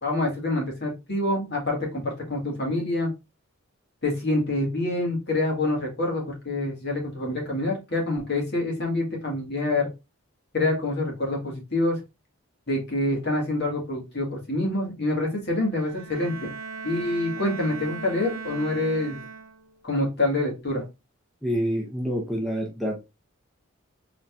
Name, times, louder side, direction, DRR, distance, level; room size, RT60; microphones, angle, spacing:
voice 1, 0.0-3.1 4.0-9.9 10.5-12.0 12.7-16.5 16.8-19.2 19.8-20.8, left 2 dB, 50° left, 0 dB, 1.7 m, -26 dB
Bowed string instrument, 15.7-19.8, right 6 dB, 65° right, 0.6 m, -38 dB
voice 2, 21.4-23.0, equal, ahead, -2 dB, 0.7 m, -27 dB
4.0 x 3.9 x 2.4 m, 0.25 s
head